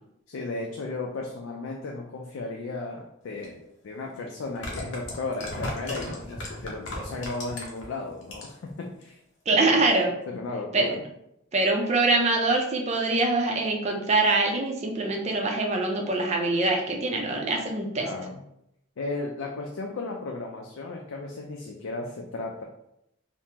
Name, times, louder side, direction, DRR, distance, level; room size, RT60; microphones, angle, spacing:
voice 1, 0.3-9.2 9.5-9.9 10.3-11.0 18.0-18.4 19.0-22.6, left 3 dB, 80° left, 0 dB, 0.4 m, -35 dB
sound 1, 3.4-3.5 4.4-7.9 8.2-8.7 9.0-9.1, left 1 dB, 60° left, 0.8 m, -35 dB
voice 2, 9.5-10.1 10.7-10.9 11.5-18.1, right 2 dB, 35° right, 1 dB, 0.5 m, -24 dB
3.5 x 2.0 x 2.8 m, 0.79 s
head